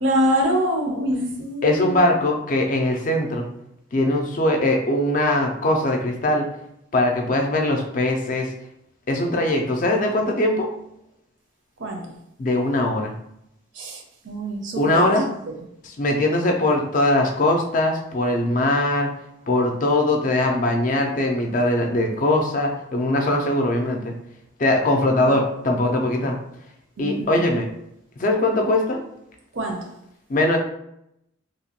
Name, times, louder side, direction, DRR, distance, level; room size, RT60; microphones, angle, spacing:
voice 1, 0.0-2.1 11.8-12.0 13.7-15.1 15.5-15.6 25.1-25.4 27.0-27.4 29.5-29.9, equal, 60° right, 2 dB, 0.6 m, -25 dB
voice 2, 1.6-3.4 3.9-6.4 6.9-8.5 9.1-10.7 12.4-13.1 14.8-15.3 15.8-19.1 19.5-24.1 24.6-26.4 27.0-27.7 28.2-29.0 30.3-30.6, left 1 dB, 40° left, 2 dB, 0.4 m, -21 dB
2.9 x 2.1 x 2.8 m, 0.78 s
head